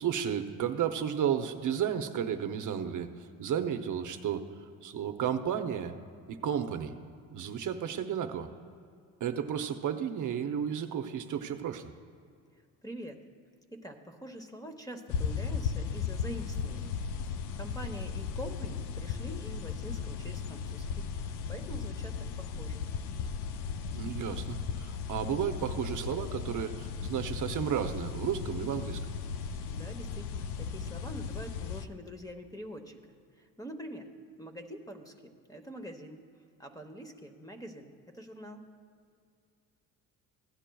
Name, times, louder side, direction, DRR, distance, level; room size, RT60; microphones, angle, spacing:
voice 1, 0.0-4.5 4.8-6.0 6.3-6.9 7.3-8.5 9.2-11.9 23.9-29.0, right 8 dB, 50° right, 7 dB, 0.7 m, -33 dB
voice 2, 12.8-13.2 13.7-17.0 17.5-22.8 29.7-34.1 34.4-36.2 36.6-38.6, equal, 10° left, 6 dB, 1.0 m, -45 dB
sound 1, 15.1-31.9, left 6 dB, 85° left, 0.6 m, -36 dB
16.0 x 9.9 x 2.3 m, 2.4 s
cardioid pair, 90°, 38 cm